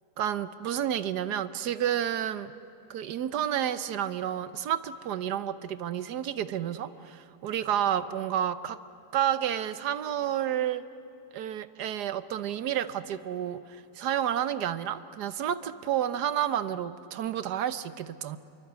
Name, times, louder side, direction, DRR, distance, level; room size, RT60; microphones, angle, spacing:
voice 1, 0.2-2.5 2.9-8.8 9.1-10.8 11.3-18.4, right 10 dB, 75° right, 13 dB, 1.4 m, -30 dB
27.5 x 23.5 x 8.1 m, 2.9 s
omnidirectional pair, 1.8 m